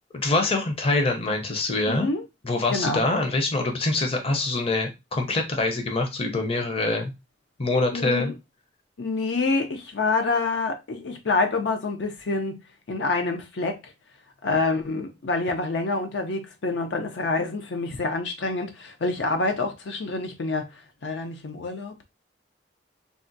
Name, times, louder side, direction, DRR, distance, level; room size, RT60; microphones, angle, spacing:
voice 1, 0.1-2.1 2.4-7.1 7.6-8.3, left 2 dB, 35° left, 0.6 m, -25 dB
voice 2, 1.9-2.2 2.7-3.0 7.9-8.3 9.0-12.6 12.9-13.9 14.4-20.7 21.0-22.0, left 3 dB, 75° left, 0.5 m, -27 dB
3.6 x 2.2 x 2.6 m
head